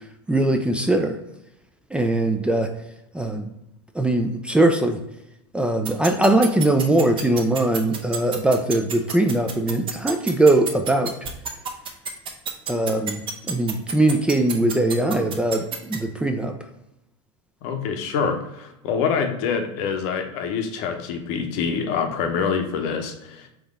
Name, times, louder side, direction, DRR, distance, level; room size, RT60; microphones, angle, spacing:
voice 1, 0.3-1.2 1.9-2.7 3.1-3.5 4.0-5.0 5.5-11.1 12.7-13.2 13.5-16.5, right 2 dB, 5° right, 5 dB, 0.3 m, -21 dB
sound 1, 5.8-16.0, right 7 dB, 35° right, 0.7 m, -29 dB
voice 2, 17.6-23.5, left 6 dB, 60° left, 6 dB, 0.8 m, -26 dB
3.8 x 3.0 x 3.6 m, 0.89 s
hypercardioid pair, 105°, 15 cm